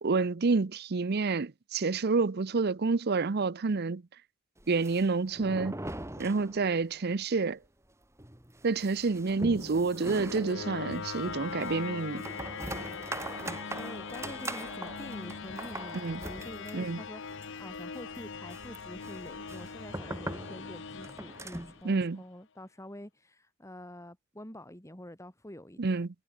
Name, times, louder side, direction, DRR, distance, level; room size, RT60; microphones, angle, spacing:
voice 1, 0.0-4.0 4.7-5.8 6.2-7.6 8.6-12.2 15.9-16.2 16.7-17.0 21.8-22.2 25.8-26.1, right 4 dB, 50° right, 0.6 m, -28 dB
sound 1, 4.6-7.0 7.2-7.3 7.6-7.7 8.2-21.8, right 1 dB, 15° right, 2.6 m, -42 dB
sound 2, 9.1-22.2, left 5 dB, 60° left, 1.0 m, -41 dB
voice 2, 13.4-26.0, left 1 dB, 15° left, 3.3 m, -47 dB
head